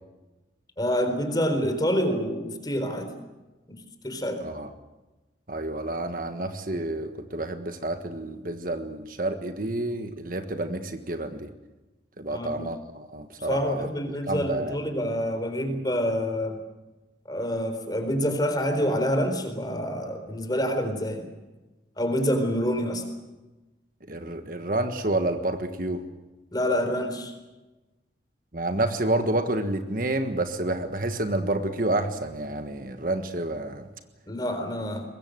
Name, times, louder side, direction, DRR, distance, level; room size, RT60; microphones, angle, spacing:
voice 1, 0.8-3.1 3.7-4.4 12.3-12.7 13.4-16.6 17.3-21.2 22.0-23.0 26.5-27.3 34.3-35.0, equal, 20° left, 7 dB, 4.1 m, -27 dB
voice 2, 5.5-11.5 12.2-13.9 14.3-14.8 24.1-26.0 28.5-33.9, right 1 dB, 50° right, 7 dB, 1.5 m, -29 dB
23.5 x 21.0 x 7.9 m, 1.1 s
head